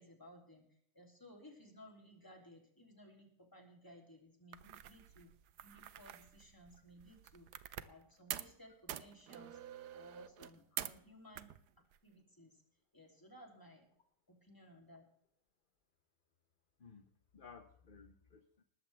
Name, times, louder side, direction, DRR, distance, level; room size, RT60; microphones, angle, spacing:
voice 1, 0.0-5.3 5.6-7.5 7.8-11.5 12.0-12.6 12.9-13.9 14.3-15.0, equal, 10° left, 1 dB, 3.2 m, -59 dB
sound 1, 4.5-8.0 8.3-8.6 8.9-11.1 11.4-12.0, right 11 dB, 75° right, 1.3 m, -47 dB
voice 2, 16.8-18.6, left 5 dB, 35° left, 7 dB, 1.0 m, -58 dB
19.5 x 14.5 x 3.4 m, 0.65 s
omnidirectional pair, 1.8 m